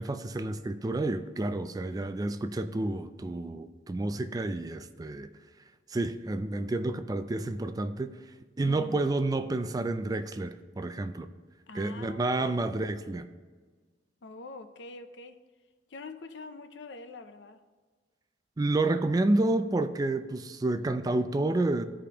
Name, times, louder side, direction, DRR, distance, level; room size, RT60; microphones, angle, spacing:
voice 1, 0.0-5.3 5.9-8.1 8.6-11.3 11.7-13.3 18.6-21.8, right 2 dB, 20° right, 11 dB, 0.3 m, -29 dB
voice 2, 8.7-9.1 11.7-12.6 14.2-15.4 15.9-17.6, left 3 dB, 70° left, 9 dB, 0.6 m, -45 dB
14.5 x 5.0 x 2.9 m, 1.4 s
head